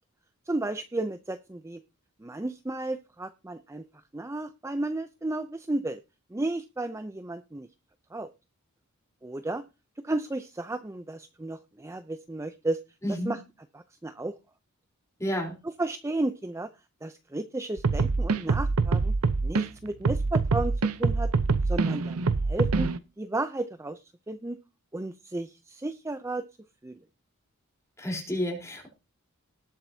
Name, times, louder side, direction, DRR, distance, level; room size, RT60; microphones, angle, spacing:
voice 1, 0.5-1.8 2.2-3.8 4.1-6.0 6.3-7.7 8.1-8.3 9.2-9.6 10.0-12.8 13.1-13.4 13.7-14.4 15.6-16.7 17.0-19.1 19.4-20.7 21.0-21.3 21.6-22.2 22.5-22.9 23.2-24.6 24.9-26.4 26.8-26.9, right 2 dB, 15° right, 10 dB, 0.5 m, -33 dB
voice 2, 13.0-13.3 15.2-15.6 28.0-28.9, equal, 15° left, 1 dB, 3.8 m, -30 dB
sound 1, 17.8-19.6 20.0-23.0, right 4 dB, 85° right, 0.7 m, -25 dB
19.5 x 7.5 x 2.7 m, 0.28 s
head